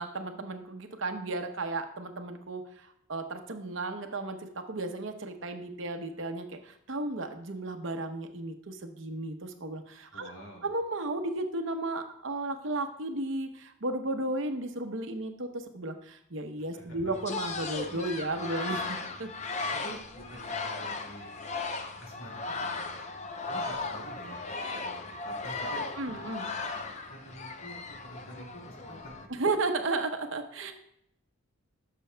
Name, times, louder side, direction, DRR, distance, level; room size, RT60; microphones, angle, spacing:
voice 1, 0.0-10.3 10.6-19.3 26.0-26.5 29.3-30.7, right 2 dB, 65° right, 6 dB, 0.8 m, -34 dB
voice 2, 10.1-10.7 16.6-17.1 19.7-21.3 22.0-22.9 23.5-26.2 27.1-29.3, right 1 dB, 70° left, -2 dB, 2.6 m, -48 dB
sound 1, 17.1-29.2, left 3 dB, 35° left, 0.6 m, -36 dB
11.5 x 6.7 x 2.2 m, 0.74 s
head